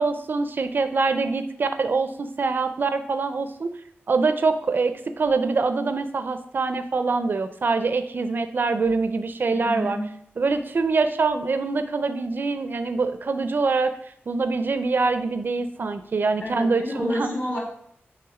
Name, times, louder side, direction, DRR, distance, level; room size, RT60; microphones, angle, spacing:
voice 1, 0.0-3.7 4.1-10.0 10.4-13.9 14.3-17.4, right 4 dB, 50° right, 10 dB, 0.4 m, -24 dB
voice 2, 9.5-10.1 16.4-17.6, equal, 45° left, -1 dB, 1.7 m, -29 dB
6.1 x 3.3 x 4.8 m, 0.68 s
wide cardioid pair, 130°, 4 cm